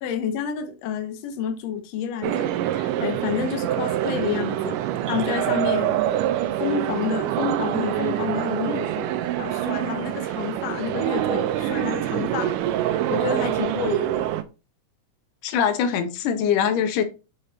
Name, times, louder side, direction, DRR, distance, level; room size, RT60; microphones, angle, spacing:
voice 1, 0.0-4.8 5.1-6.0 6.6-9.1 9.4-12.6 12.8-14.2, left 8 dB, 65° left, 1.9 m, -29 dB
sound 1, 2.2-14.4, right 12 dB, 85° right, 2.2 m, -25 dB
voice 2, 15.4-17.0, left 8 dB, 85° left, 2.4 m, -22 dB
6.7 x 5.0 x 4.1 m
omnidirectional pair, 3.6 m